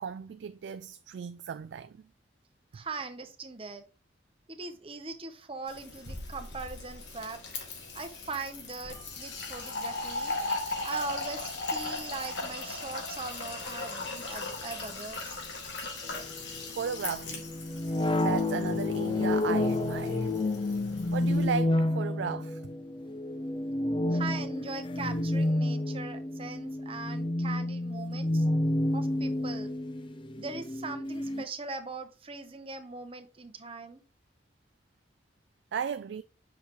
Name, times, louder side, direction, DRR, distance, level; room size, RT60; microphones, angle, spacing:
voice 1, 0.0-2.0 16.8-17.4 18.2-20.3 21.1-22.6 35.7-36.2, right 6 dB, 65° right, 0.3 m, -35 dB
voice 2, 2.7-3.8 4.5-7.4 7.9-10.3 10.8-15.4 24.1-28.5 28.9-29.7 30.4-34.0, right 3 dB, 30° right, 0.8 m, -40 dB
Fill (with liquid), 5.7-21.5, left 3 dB, 70° left, 2.1 m, -38 dB
sound 1, 16.1-31.4, left 1 dB, 25° left, 0.5 m, -30 dB
8.1 x 6.0 x 3.0 m
head